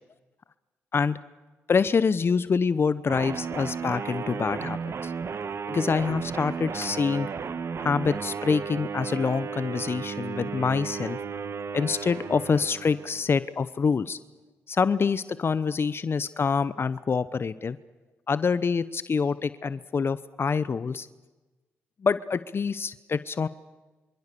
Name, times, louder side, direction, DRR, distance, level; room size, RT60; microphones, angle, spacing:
voice 1, 1.7-5.1 5.7-7.3 7.8-11.2 11.7-14.2 14.7-17.8 18.3-21.1 22.0-23.5, left 5 dB, 45° left, 16 dB, 0.9 m, -26 dB
sound 1, 3.1-13.3, right 6 dB, 55° right, 1.4 m, -34 dB
26.5 x 25.0 x 6.9 m, 1.2 s
supercardioid pair, 50°, 5 cm